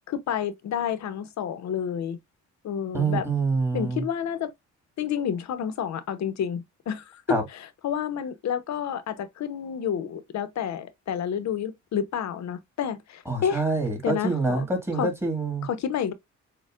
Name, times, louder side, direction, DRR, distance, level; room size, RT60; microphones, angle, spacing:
voice 1, 0.1-2.2 2.6-3.3 3.7-4.5 5.0-13.6 14.0-14.7 14.9-15.1 15.6-16.1, left 8 dB, 65° left, 0.9 m, -30 dB
voice 2, 2.9-4.0 7.3-7.4 13.3-15.7, right 3 dB, 10° right, 1.9 m, -26 dB
6.5 x 2.4 x 2.4 m
cardioid pair, 90°, 30 cm